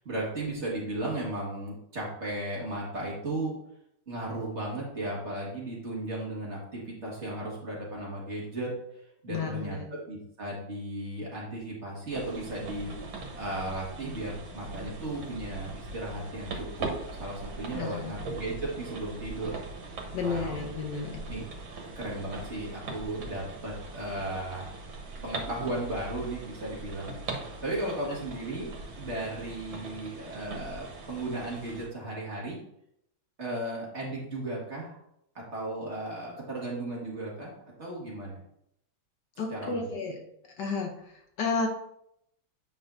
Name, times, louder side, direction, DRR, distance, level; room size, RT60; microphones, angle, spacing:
voice 1, 0.0-3.5 4.1-8.7 9.2-12.9 13.4-16.9 17.2-19.6 20.2-20.6 21.3-21.4 22.0-24.7 25.2-28.7 29.0-32.6 33.4-35.0 35.4-37.5 37.8-38.4 39.5-39.9, right 1 dB, 35° right, -4 dB, 1.9 m, -35 dB
voice 2, 9.3-9.8 17.7-18.2 20.1-21.3 39.4-40.2 40.6-41.7, left 4 dB, 65° left, 2 dB, 1.4 m, -32 dB
sound 1, 12.1-31.9, right 3 dB, 90° right, 1.9 m, -41 dB
8.3 x 5.5 x 2.6 m, 0.76 s
omnidirectional pair, 2.1 m